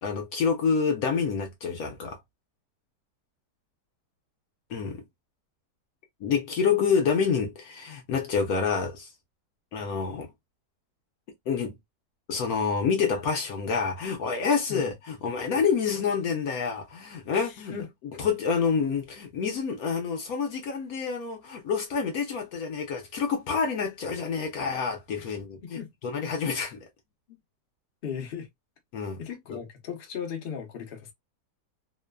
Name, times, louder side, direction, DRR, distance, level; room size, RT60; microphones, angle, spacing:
voice 1, 0.0-2.2 4.7-5.0 6.2-9.1 9.7-10.3 11.5-11.8 12.3-17.7 18.2-26.8 28.9-29.2 29.5-29.6, left 5 dB, 70° left, 1.0 m, -28 dB
voice 2, 17.3-17.9 25.2-25.9 28.0-28.5 29.2-31.1, left 7 dB, 50° left, 0.7 m, -37 dB
3.0 x 2.1 x 2.2 m
omnidirectional pair, 1.8 m